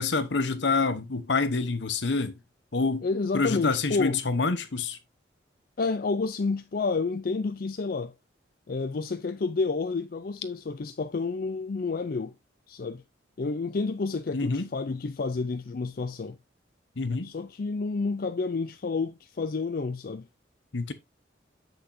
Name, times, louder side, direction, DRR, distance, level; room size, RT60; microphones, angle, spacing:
voice 1, 0.0-2.3 2.7-3.1 3.3-5.0 14.3-14.7 17.0-17.3 20.7-20.9, left 3 dB, 70° left, 0.9 m, -27 dB
voice 2, 3.0-4.2 5.8-8.1 8.7-12.3 12.7-13.0 13.4-16.4 17.2-20.3, left 4 dB, 50° left, 0.4 m, -30 dB
8.1 x 6.5 x 2.7 m
head